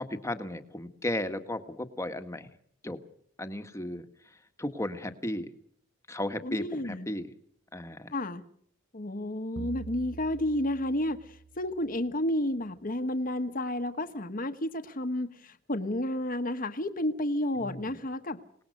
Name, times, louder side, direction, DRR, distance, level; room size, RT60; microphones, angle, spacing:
voice 1, 0.0-2.5 2.8-3.0 3.4-4.1 4.6-5.5 6.1-7.3 7.7-8.1 17.6-18.0, left 1 dB, 15° left, 8 dB, 1.5 m, -35 dB
voice 2, 6.4-7.1 8.1-8.4 8.9-18.4, left 1 dB, 45° left, 7 dB, 1.3 m, -31 dB
sound 1, 9.6-12.3, right 4 dB, 80° right, 1.2 m, -45 dB
27.0 x 19.5 x 6.5 m, 0.64 s
head